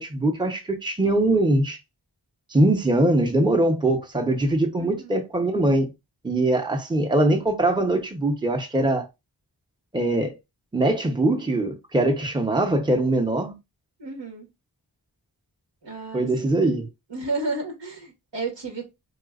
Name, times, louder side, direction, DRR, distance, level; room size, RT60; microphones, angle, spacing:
voice 1, 0.0-1.8 2.5-5.9 6.2-9.1 9.9-10.3 10.7-13.6 16.1-16.9, right 1 dB, 10° right, 0.8 m, -22 dB
voice 2, 4.8-5.1 14.0-14.5 15.8-16.5 17.1-18.9, right 3 dB, 80° right, 1.6 m, -32 dB
4.0 x 2.4 x 2.4 m
cardioid pair, 40°, 43 cm